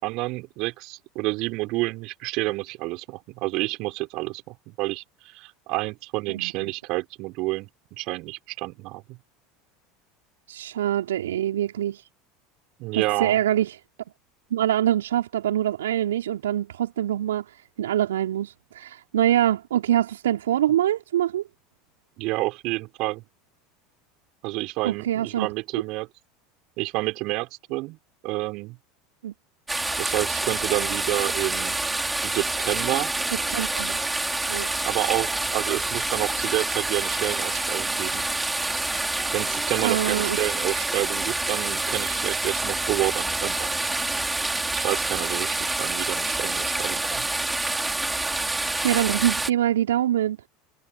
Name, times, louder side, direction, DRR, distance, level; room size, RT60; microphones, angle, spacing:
voice 1, 0.0-9.2 12.8-13.4 22.2-23.2 24.4-26.1 26.8-28.0 28.2-28.8 30.0-31.8 32.2-33.1 34.8-38.2 39.3-43.7 44.7-47.2, right 22 dB, 55° right, 6.4 m, -29 dB
voice 2, 6.3-6.7 10.5-12.0 12.9-13.8 14.5-17.5 17.8-21.4 24.8-25.5 29.2-29.3 33.3-34.0 34.5-34.7 39.8-40.4 48.4-50.4, right 11 dB, 75° right, 3.6 m, -24 dB
sound 1, 29.7-49.5, right 2 dB, 10° right, 5.6 m, -27 dB
figure-of-eight pair, 75°, 0 cm